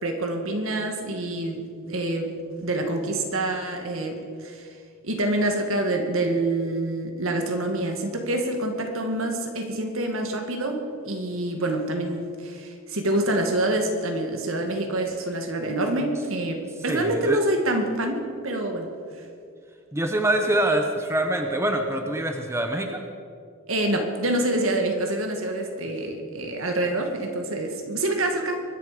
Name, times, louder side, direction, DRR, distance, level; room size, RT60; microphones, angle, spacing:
voice 1, 0.0-4.7 5.0-18.9 23.7-28.6, right 1 dB, 70° right, 4 dB, 2.0 m, -26 dB
voice 2, 16.9-17.4 19.9-23.0, right 1 dB, 10° right, 4 dB, 0.9 m, -25 dB
23.5 x 10.5 x 5.1 m, 2.3 s
head